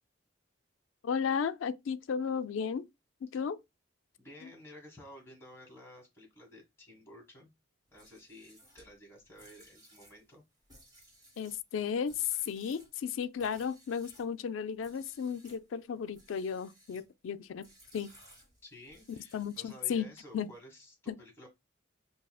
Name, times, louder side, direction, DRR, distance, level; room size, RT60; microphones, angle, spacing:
voice 1, 1.0-2.9 3.2-3.6 4.4-4.5 11.4-17.7 17.9-18.1 19.1-20.1 20.3-20.5 21.1-21.2, left 7 dB, 80° left, 0.3 m, -34 dB
voice 2, 4.2-7.5 7.9-10.4 18.6-21.5, left 1 dB, 15° left, 1.7 m, -53 dB
sound 1, 7.9-14.3 14.8-15.6 16.1-17.1 17.6-20.0, right 1 dB, 20° right, 1.8 m, -60 dB
5.5 x 2.7 x 2.3 m
head